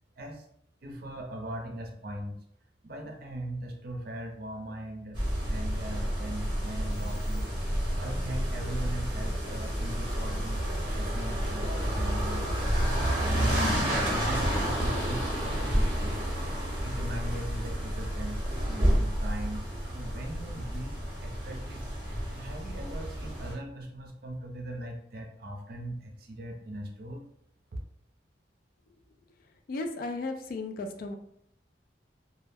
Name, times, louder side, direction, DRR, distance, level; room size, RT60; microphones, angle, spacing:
voice 1, 0.8-2.4 2.8-5.2 5.5-7.5 8.0-12.5 13.0-16.2 16.8-21.0 21.2-21.9 22.3-27.2, right 1 dB, 55° right, 2 dB, 0.5 m, -40 dB
sound 1, 5.1-23.5, equal, 30° right, 0.8 m, -30 dB
voice 2, 29.7-31.2, left 3 dB, 50° left, 6 dB, 0.3 m, -34 dB
2.2 x 2.0 x 3.3 m, 0.70 s
head